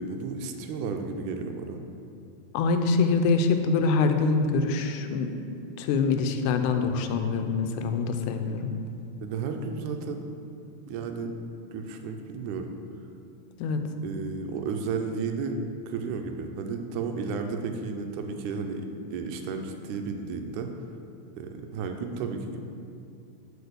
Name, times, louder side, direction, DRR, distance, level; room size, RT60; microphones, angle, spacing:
voice 1, 0.0-1.8 9.2-10.3 10.9-11.3 11.7-12.7 14.0-15.6 15.9-20.7 21.4-22.6, right 4 dB, 85° right, 5 dB, 2.1 m, -33 dB
voice 2, 2.5-5.4 5.8-8.7 13.6-13.8, left 4 dB, 90° left, 7 dB, 2.1 m, -25 dB
6.7 x 4.3 x 6.7 m, 2.5 s
omnidirectional pair, 3.5 m